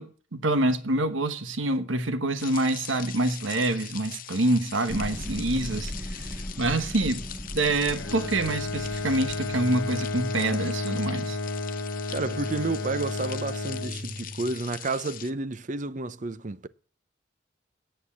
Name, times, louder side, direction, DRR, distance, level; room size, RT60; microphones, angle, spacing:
voice 1, 0.0-7.2 7.5-11.4, right 2 dB, 80° right, 1.2 m, -26 dB
sound 1, 2.4-15.3, left 11 dB, 45° left, 0.8 m, -42 dB
sound 2, 4.9-10.3, equal, ahead, 1.6 m, -38 dB
Bowed string instrument, 7.9-14.6, left 2 dB, 70° left, 1.3 m, -32 dB
voice 2, 12.1-16.7, right 3 dB, 40° right, 0.7 m, -31 dB
9.8 x 8.0 x 8.3 m
head